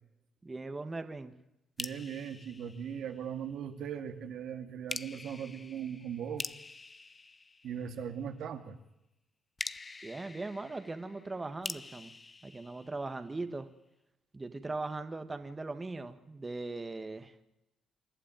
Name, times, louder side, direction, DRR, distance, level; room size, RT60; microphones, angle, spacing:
voice 1, 0.4-1.4 10.0-12.1 12.4-13.7 14.3-17.4, right 3 dB, 20° right, 8 dB, 1.7 m, -39 dB
sound 1, 1.8-3.5 4.9-8.2 9.6-13.5, left 3 dB, 25° left, 0.8 m, -45 dB
voice 2, 1.8-6.5 7.6-8.8, right 8 dB, 75° right, 7 dB, 2.2 m, -39 dB
28.0 x 12.0 x 9.1 m, 0.88 s
cardioid pair, 90°, 0 cm